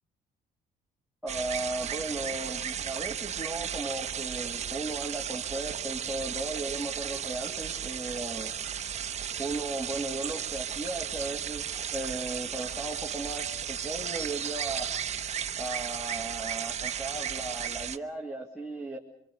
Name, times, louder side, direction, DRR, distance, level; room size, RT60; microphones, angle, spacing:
voice 1, 1.2-8.5 9.4-11.6 11.9-14.9 15.5-19.0, right 2 dB, ahead, -2 dB, 2.7 m, -36 dB
sound 1, 1.3-18.0, right 8 dB, 40° right, 0.9 m, -34 dB
25.5 x 22.5 x 6.7 m, 0.67 s
cardioid pair, 110°, 17 cm